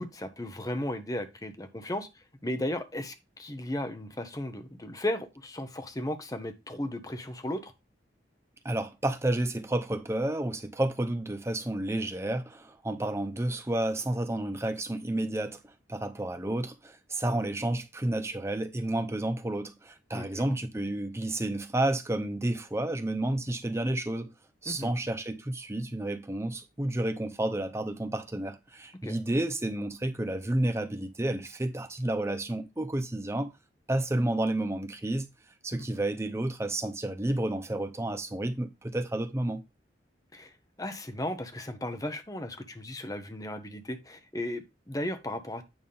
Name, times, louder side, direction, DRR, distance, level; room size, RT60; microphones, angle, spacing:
voice 1, 0.0-7.7 20.1-20.5 24.7-24.9 29.0-29.2 35.7-35.9 40.3-45.6, left 1 dB, 20° left, 0.8 m, -35 dB
voice 2, 8.6-15.6 15.9-24.3 24.6-33.5 33.9-35.3 35.6-39.6, right 1 dB, 15° right, 0.6 m, -31 dB
9.0 x 3.5 x 5.5 m
head